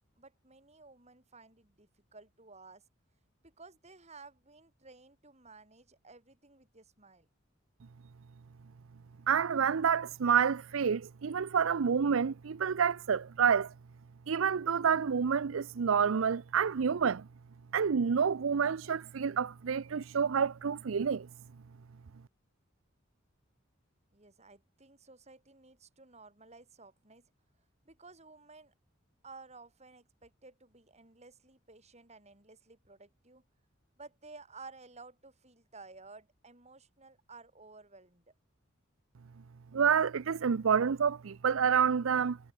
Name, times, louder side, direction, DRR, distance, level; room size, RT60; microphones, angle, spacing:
voice 1, 0.2-2.8 3.4-7.3 24.1-27.3 27.8-28.7 29.2-33.4 34.0-38.3, right 3 dB, 35° right, 7.5 m, -54 dB
voice 2, 9.3-13.7 14.3-17.2 17.7-21.3 39.7-42.4, right 6 dB, 90° right, 0.5 m, -28 dB
head